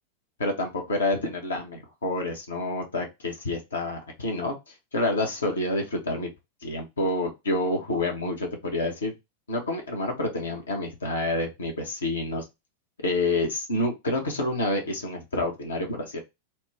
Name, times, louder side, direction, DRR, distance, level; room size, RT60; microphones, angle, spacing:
voice 1, 0.4-6.3 6.6-9.1 9.5-12.4 13.0-16.2, left 2 dB, 70° left, 2 dB, 0.9 m, -28 dB
2.9 x 2.2 x 3.4 m, 0.22 s
figure-of-eight pair, 90°, 0 cm